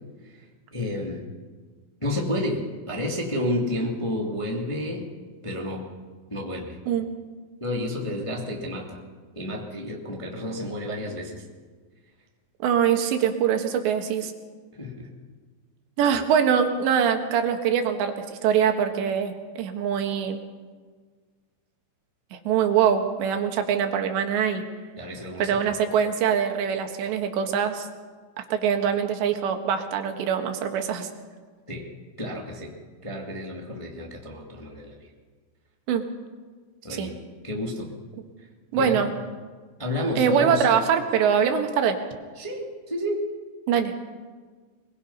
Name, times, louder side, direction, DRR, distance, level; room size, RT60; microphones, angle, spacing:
voice 1, 0.2-1.2 2.0-5.1 5.4-5.8 6.3-6.8 7.6-9.0 9.3-11.4 14.8-15.1 16.1-16.2 25.0-25.8 31.7-31.9 32.2-32.7 33.0-35.1 36.8-37.1 37.4-37.9 38.7-39.0 39.8-40.7 42.3-43.3, left 1 dB, 10° left, -1 dB, 1.4 m, -31 dB
voice 2, 12.6-14.3 16.0-20.4 22.3-24.6 25.4-27.9 28.5-31.1 35.9-36.1 37.0-37.1 38.7-39.1 40.2-42.0 43.7-43.9, right 8 dB, 85° right, 5 dB, 3.8 m, -23 dB
23.5 x 22.0 x 5.6 m, 1.5 s
omnidirectional pair, 5.0 m